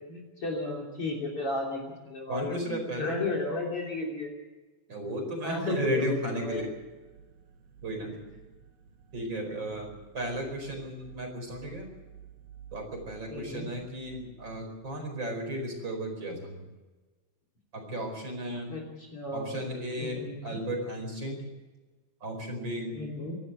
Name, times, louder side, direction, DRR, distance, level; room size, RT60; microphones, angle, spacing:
voice 1, 0.1-4.3 5.4-6.7 13.3-13.7 18.7-19.6 20.0-20.6 22.9-23.3, left 2 dB, 40° left, 1 dB, 3.9 m, -34 dB
voice 2, 2.3-3.2 4.9-6.7 7.8-8.2 9.1-11.9 12.7-16.6 17.7-18.7 19.3-21.5 22.2-23.0, equal, 30° right, 4 dB, 5.2 m, -34 dB
sound 1, 6.5-15.0, right 8 dB, 80° right, 3.4 m, -53 dB
24.5 x 13.0 x 8.1 m, 1.2 s
omnidirectional pair, 4.0 m